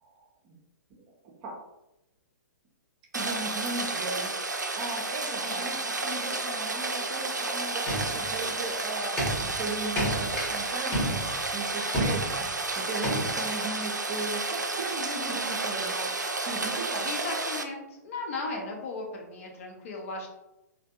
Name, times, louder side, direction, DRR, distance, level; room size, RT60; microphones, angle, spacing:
voice 1, 0.0-0.5 1.0-1.1 1.4-1.6 3.1-4.3 4.7-16.1 16.5-17.1, right 3 dB, 30° right, -1 dB, 0.6 m, -37 dB
Rain, 3.1-17.6, right 3 dB, 85° right, 0.4 m, -31 dB
sound 1, 7.9-8.6 9.0-10.6 10.9-11.5 11.9-12.5 13.0-13.4, equal, 15° left, 1.0 m, -31 dB
voice 2, 17.0-20.3, left 3 dB, 50° left, 1 dB, 0.8 m, -36 dB
3.3 x 2.2 x 2.8 m, 0.91 s
figure-of-eight pair, 115°, 9 cm